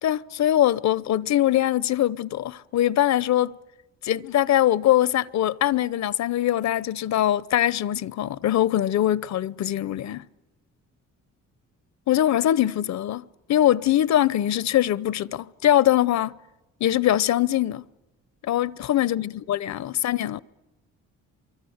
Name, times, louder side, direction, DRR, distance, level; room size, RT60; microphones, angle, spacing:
voice 1, 0.0-3.6 4.0-10.2 12.1-13.2 13.5-16.3 16.8-17.8 18.4-20.4, left 12 dB, 65° left, 0.8 m, -22 dB
24.0 x 24.0 x 8.0 m
cardioid pair, 90°, 30 cm